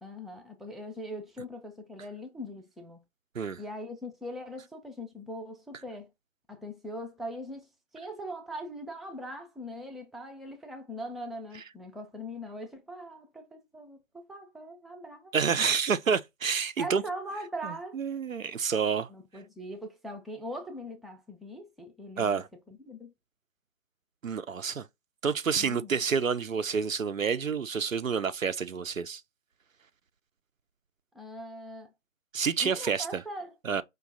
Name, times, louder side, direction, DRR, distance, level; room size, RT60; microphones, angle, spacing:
voice 1, 0.0-3.0 3.6-6.1 6.5-7.7 7.9-15.3 16.8-18.0 19.1-22.4 22.7-23.1 25.6-26.0 31.1-31.9 32.6-33.5, equal, ahead, 0.4 m, -41 dB
voice 2, 15.3-17.0 17.6-19.1 22.2-22.5 24.2-24.9 25.2-29.2 32.3-33.2 33.7-33.8, right 6 dB, 90° right, 0.7 m, -29 dB
5.1 x 2.3 x 3.9 m
figure-of-eight pair, 175°, 39 cm